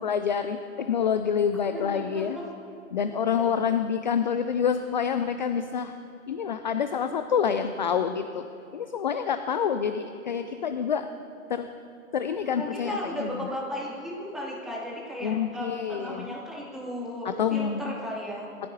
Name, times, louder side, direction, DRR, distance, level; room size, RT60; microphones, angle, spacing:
voice 1, 0.0-2.4 2.9-5.9 6.3-8.4 8.7-11.1 11.5-11.7 12.1-13.5 15.2-16.3 17.2-17.9, left 7 dB, 35° left, 9 dB, 0.4 m, -27 dB
voice 2, 1.7-2.5 10.4-10.5 12.6-18.5, equal, ahead, -5 dB, 2.4 m, -35 dB
20.5 x 14.0 x 2.7 m, 2.6 s
figure-of-eight pair, 120°, 42 cm